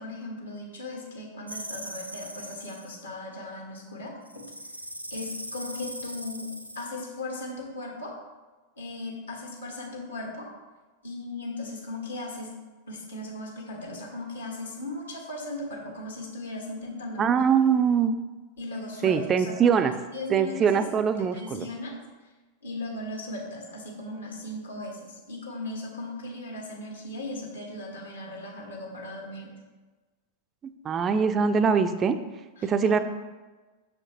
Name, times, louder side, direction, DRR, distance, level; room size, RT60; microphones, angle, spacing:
voice 1, 0.0-4.1 5.1-6.5 6.7-8.1 8.8-10.5 11.0-12.5 12.9-17.4 18.6-21.0 21.3-22.0 22.6-29.5 32.6-33.0, left 2 dB, 70° left, 0 dB, 1.5 m, -37 dB
sound 1, 1.5-3.0 4.3-6.9, equal, 90° right, 0.5 m, -39 dB
voice 2, 17.2-18.2 19.0-19.9 20.3-21.7 30.6-32.2 32.6-33.0, right 6 dB, 25° right, 10 dB, 0.4 m, -23 dB
7.2 x 6.3 x 3.0 m, 1.2 s
figure-of-eight pair, 90°, 0 cm